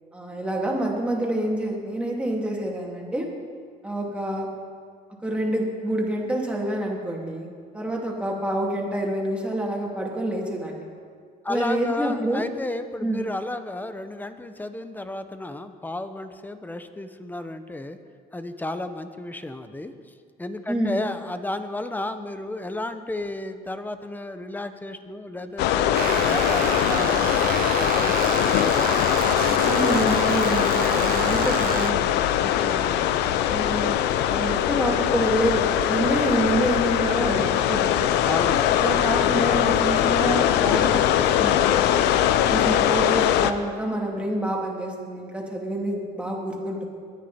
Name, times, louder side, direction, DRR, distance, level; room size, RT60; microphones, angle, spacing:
voice 1, 0.1-3.3 3.8-4.5 5.2-7.5 7.7-10.9 11.5-12.4 13.0-13.3 20.7-21.0 29.6-33.0 33.5-34.0 34.2-38.2 38.8-42.0 42.5-46.8, right 1 dB, 5° right, -2 dB, 3.0 m, -27 dB
voice 2, 11.4-18.0 18.3-19.9 20.4-29.0 38.2-38.8, left 2 dB, 10° left, 9 dB, 0.9 m, -33 dB
sound 1, 25.6-43.5, left 11 dB, 90° left, 0.7 m, -21 dB
sound 2, 25.9-31.9, right 13 dB, 60° right, 0.4 m, -30 dB
22.5 x 9.7 x 4.4 m, 2.1 s
cardioid pair, 110°, 17 cm